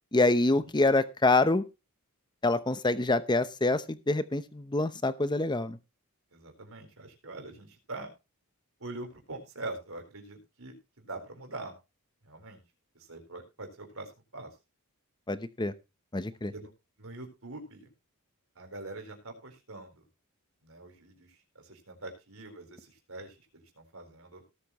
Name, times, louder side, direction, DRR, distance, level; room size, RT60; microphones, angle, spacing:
voice 1, 0.1-1.6 2.4-5.8 15.3-15.7 16.1-16.5, left 2 dB, 20° left, 13 dB, 0.8 m, -26 dB
voice 2, 6.3-8.1 8.8-11.7 12.2-12.6 12.9-14.5 16.5-16.7 17.0-17.9 18.6-20.0 20.6-24.4, right 2 dB, 65° right, 4 dB, 4.2 m, -44 dB
18.0 x 8.4 x 3.1 m, 0.27 s
head